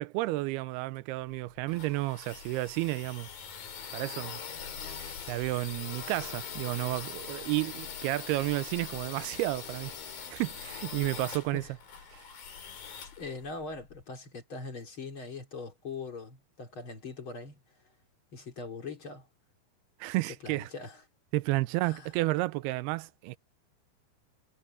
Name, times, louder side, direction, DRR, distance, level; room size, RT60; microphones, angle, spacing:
voice 1, 0.0-3.3 3.9-4.4 5.0-11.6 12.1-12.2 20.0-20.7 21.3-23.4, right 19 dB, 90° right, 2.6 m, -32 dB
sound 1, 1.3-14.0, left 7 dB, 65° left, 5.0 m, -42 dB
voice 2, 13.2-17.6 18.3-19.3 20.4-21.0 21.8-22.1, left 4 dB, 35° left, 3.3 m, -41 dB
omnidirectional pair, 4.5 m